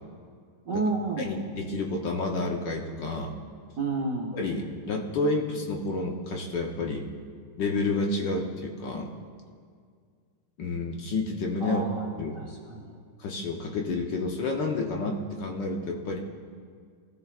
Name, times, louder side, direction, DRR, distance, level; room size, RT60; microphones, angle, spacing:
voice 1, 0.6-1.3 3.8-4.4 11.6-12.9, right 3 dB, 50° right, -1 dB, 1.1 m, -31 dB
voice 2, 1.2-3.3 4.3-7.1 7.6-9.1 10.6-11.8 12.2-12.4 13.2-16.2, left 3 dB, 60° left, 1 dB, 1.4 m, -30 dB
19.5 x 13.5 x 2.4 m, 2.1 s
omnidirectional pair, 2.4 m